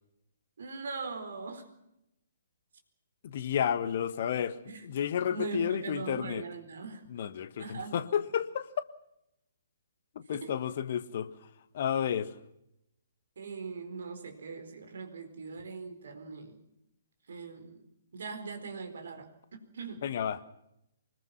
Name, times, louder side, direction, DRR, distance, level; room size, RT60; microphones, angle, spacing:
voice 1, 0.6-1.7 4.6-4.8 5.3-7.0 7.6-8.0 10.3-10.5 13.4-16.6 17.3-20.0, right 4 dB, 60° right, 6 dB, 4.4 m, -41 dB
voice 2, 3.2-6.4 7.1-8.9 10.1-11.3 11.7-12.4 20.0-20.4, left 8 dB, 45° left, 13 dB, 1.5 m, -31 dB
24.5 x 21.0 x 5.8 m, 0.83 s
figure-of-eight pair, 125°, 0 cm